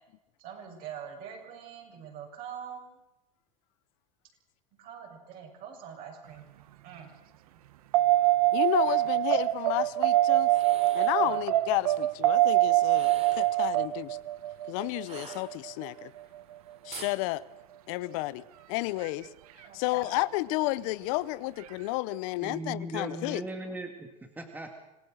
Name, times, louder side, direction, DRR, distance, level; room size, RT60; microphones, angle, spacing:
voice 1, 0.4-3.0 4.8-7.1 7.5-7.6 8.9-9.0 11.2-11.4 19.6-20.2, right 8 dB, 50° right, 7.2 m, -44 dB
sound 1, 7.9-16.4 19.0-19.1, right 16 dB, 80° right, 1.0 m, -25 dB
voice 2, 8.5-10.5 10.9-14.2 14.7-16.1 16.8-17.4 17.9-19.3 19.7-23.4, left 19 dB, 60° left, 0.7 m, -31 dB
sound 2, 10.4-11.2 12.8-13.6 15.0-15.9 16.9-17.2, right 6 dB, 35° right, 3.3 m, -45 dB
voice 3, 22.4-24.7, right 1 dB, 10° right, 2.3 m, -38 dB
26.0 x 17.5 x 6.4 m
supercardioid pair, 110°, 19 cm